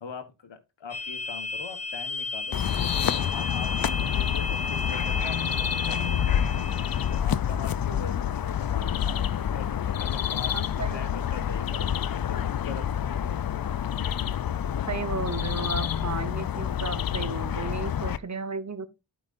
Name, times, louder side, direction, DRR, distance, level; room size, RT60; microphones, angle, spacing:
voice 1, 0.0-3.8 4.1-6.6 7.1-13.4 14.4-14.7, left 5 dB, 80° left, 1.5 m, -42 dB
sound 1, 0.9-7.2, left 3 dB, 35° left, 0.9 m, -33 dB
sound 2, 2.5-18.2, left 9 dB, 55° left, 0.5 m, -28 dB
voice 2, 10.5-11.1 14.9-18.9, right 4 dB, 40° right, 1.0 m, -34 dB
12.0 x 5.3 x 2.6 m
cardioid pair, 60°, 44 cm